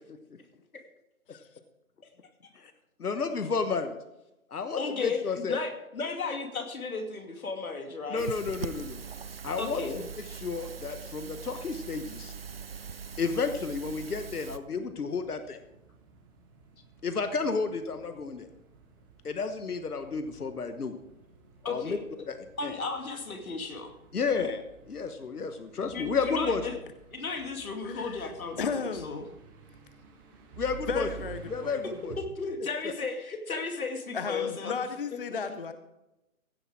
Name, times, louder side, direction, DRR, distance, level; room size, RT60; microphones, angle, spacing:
voice 1, 3.0-3.9 4.5-5.6 8.1-9.0 9.4-12.3 13.2-15.6 17.0-18.5 19.2-21.0 21.7-22.0 22.3-22.8 24.1-26.6 30.6-31.1 31.5-32.1 32.6-32.9, left 5 dB, 90° left, 9 dB, 1.2 m, -32 dB
voice 2, 4.8-5.2 5.5-8.3 9.6-10.0 21.6-22.0 22.6-23.9 25.9-26.7 27.1-29.2 32.2-34.7, left 4 dB, 70° left, 5 dB, 2.4 m, -34 dB
sound 1, 8.2-14.6, right 6 dB, 45° right, 0.4 m, -41 dB
sound 2, 14.1-32.2, right 8 dB, 15° right, 1.2 m, -51 dB
voice 3, 27.8-28.3 28.6-29.2 30.9-31.8 34.1-35.7, left 5 dB, 40° left, 10 dB, 0.5 m, -34 dB
15.5 x 8.5 x 4.8 m, 0.93 s
hypercardioid pair, 155°, 44 cm